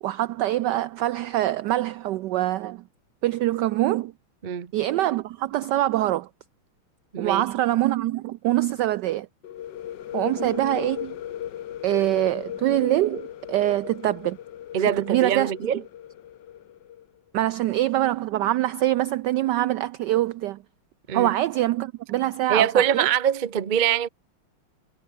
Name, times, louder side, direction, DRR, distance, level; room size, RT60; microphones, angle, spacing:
voice 1, 0.0-2.8 3.2-4.1 4.7-6.3 7.2-9.3 10.1-11.1 11.8-14.4 15.1-15.5 17.3-20.6 21.1-22.7 22.9-23.1, right 14 dB, 85° right, 0.9 m, -24 dB
voice 2, 7.1-7.5 14.7-15.8 21.1-21.3 22.5-24.1, right 9 dB, 65° right, 0.4 m, -23 dB
sound 1, 9.4-17.0, left 11 dB, 60° left, 1.5 m, -37 dB
omnidirectional pair, 2.4 m